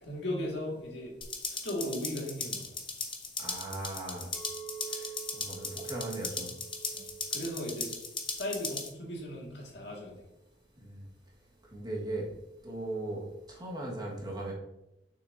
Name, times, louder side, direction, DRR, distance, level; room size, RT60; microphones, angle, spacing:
voice 1, 0.0-1.1 1.5-2.6 6.9-7.0 7.3-8.0 8.3-10.1, left 1 dB, 75° left, -2 dB, 1.9 m, -36 dB
sound 1, 1.2-8.9, left 5 dB, 30° left, 0.8 m, -38 dB
voice 2, 3.4-4.3 4.9-5.1 5.4-6.5 10.8-11.0 11.7-12.3 12.6-14.5, right 2 dB, 25° right, -3 dB, 1.5 m, -38 dB
Chink clink, 4.3-8.7 9.0-9.4, right 9 dB, ahead, 1.9 m, -48 dB
6.5 x 6.1 x 2.6 m, 0.91 s
head